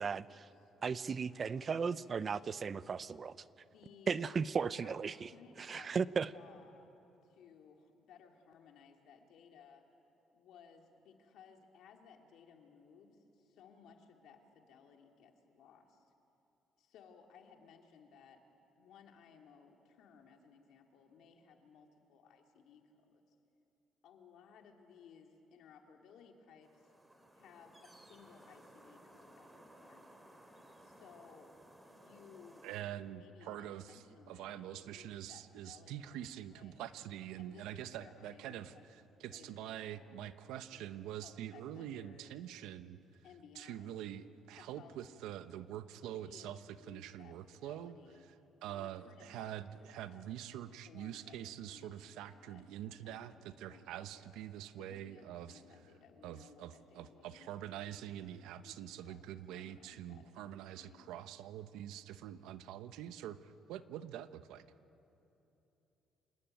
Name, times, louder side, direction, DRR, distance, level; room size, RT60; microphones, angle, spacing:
voice 1, 0.0-2.4 3.5-4.3 4.8-6.9 7.2-9.8 10.3-16.1 16.8-18.4 18.8-23.3 24.0-26.9 27.3-30.2 30.8-31.5 31.8-32.7 33.1-36.9 37.4-38.9 39.3-40.3 40.6-42.3 43.2-44.0 44.6-45.0 46.0-48.3 48.7-50.2 50.9-53.4 53.7-54.4 54.8-58.1 58.6-61.1, left 6 dB, 75° left, 3 dB, 2.7 m, -60 dB
voice 2, 0.8-3.4 4.1-5.3 5.6-6.3, right 5 dB, 40° right, 17 dB, 0.6 m, -35 dB
sound 1, 26.6-32.8, right 1 dB, 10° right, 3.0 m, -59 dB
voice 3, 32.6-38.7 39.2-43.0 43.6-46.6 46.9-48.0 48.6-55.6 56.2-64.6, right 11 dB, 90° right, 12 dB, 0.9 m, -45 dB
27.0 x 19.0 x 9.1 m, 3.0 s
cardioid pair, 105°, 0 cm